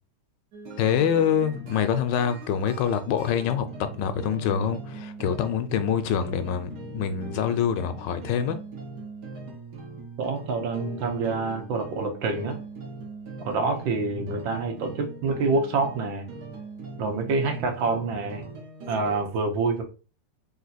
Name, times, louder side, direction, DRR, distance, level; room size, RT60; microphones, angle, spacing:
sound 1, 0.5-19.2, right 3 dB, 65° right, 1.4 m, -41 dB
voice 1, 0.8-3.7 4.0-8.6, left 8 dB, 75° left, 1.2 m, -25 dB
voice 2, 10.2-12.6 13.4-16.3 17.0-18.5 18.9-19.8, right 3 dB, 85° right, 1.6 m, -27 dB
3.6 x 2.8 x 4.0 m
omnidirectional pair, 2.0 m